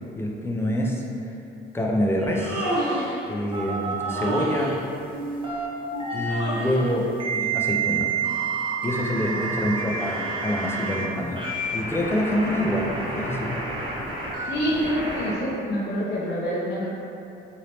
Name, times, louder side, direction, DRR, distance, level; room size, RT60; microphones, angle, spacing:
voice 1, 0.1-1.0 1.7-2.7 3.3-4.7 6.1-7.1 7.3-8.1 8.8-13.6, equal, 10° left, -1 dB, 0.4 m, -26 dB
Human voice, 2.2-3.2 4.1-4.8 6.2-6.9, right 1 dB, 65° right, 1.3 m, -29 dB
sound 1, 3.5-4.4 5.1-6.5 7.2-11.1 11.4-15.4, right 4 dB, 25° right, 0.7 m, -29 dB
voice 2, 14.5-16.9, equal, 55° left, -7 dB, 0.6 m, -27 dB
3.1 x 2.7 x 2.9 m, 2.7 s
cardioid pair, 90°, 20 cm